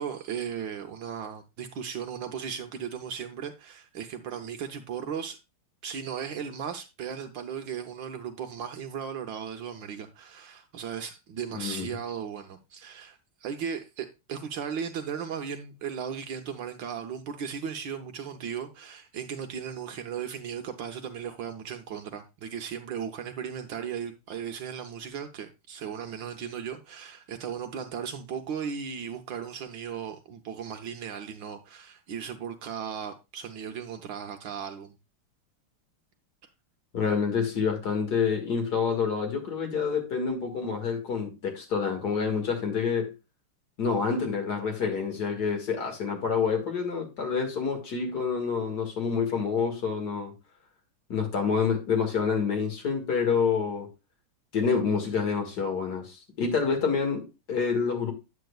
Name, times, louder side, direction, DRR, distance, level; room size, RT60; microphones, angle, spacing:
voice 1, 0.0-5.4 5.8-34.9, right 7 dB, 65° right, 1.4 m, -36 dB
voice 2, 11.5-11.9 36.9-43.1 43.8-50.3 51.1-53.9 54.5-58.1, left 6 dB, 50° left, 2.4 m, -27 dB
9.0 x 8.4 x 2.3 m
omnidirectional pair, 2.4 m